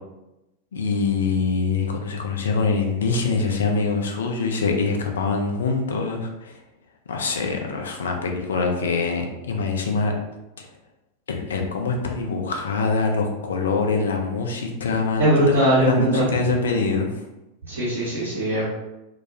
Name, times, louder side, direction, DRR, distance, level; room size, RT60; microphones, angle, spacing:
voice 1, 0.7-6.6 7.1-10.1 10.6-10.7 11.3-15.5 15.8-17.1, left 4 dB, 65° left, 3 dB, 0.4 m, -24 dB
voice 2, 15.2-16.3 17.7-18.6, right 1 dB, 70° right, -10 dB, 0.8 m, -20 dB
2.2 x 2.1 x 2.7 m, 0.95 s
figure-of-eight pair, 90°, 0 cm